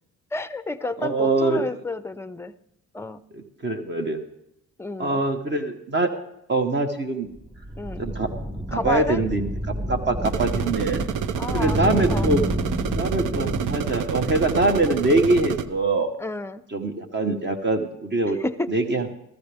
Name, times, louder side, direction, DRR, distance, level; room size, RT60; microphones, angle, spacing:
voice 1, 0.3-2.5 2.9-3.2 4.8-5.2 7.8-8.1 8.7-9.2 11.4-11.8 12.1-12.3 16.2-16.6 18.3-18.7, left 2 dB, 10° left, 13 dB, 0.5 m, -30 dB
voice 2, 1.0-1.7 3.3-4.2 5.0-6.1 6.5-7.3 8.0-8.3 8.7-9.5 9.9-11.0 11.5-12.4 13.0-16.1 16.7-18.4 18.7-19.1, right 2 dB, 35° right, 6 dB, 1.3 m, -23 dB
sound 1, 7.4-15.8, equal, 20° right, 5.8 m, -30 dB
sound 2, 10.2-15.7, right 9 dB, 90° right, 0.6 m, -29 dB
14.5 x 14.5 x 3.4 m, 0.77 s
cardioid pair, 90°, 30 cm